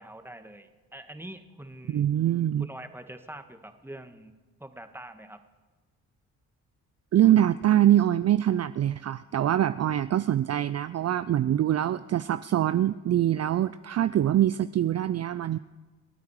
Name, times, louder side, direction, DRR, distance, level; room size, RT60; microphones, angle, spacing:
voice 1, 0.0-2.0 2.6-4.3 4.6-5.4, right 1 dB, 5° right, 7 dB, 1.7 m, -44 dB
voice 2, 1.9-2.7 7.1-15.6, right 11 dB, 45° right, 14 dB, 0.5 m, -24 dB
28.0 x 9.3 x 4.9 m, 1.2 s
supercardioid pair, 50°, 37 cm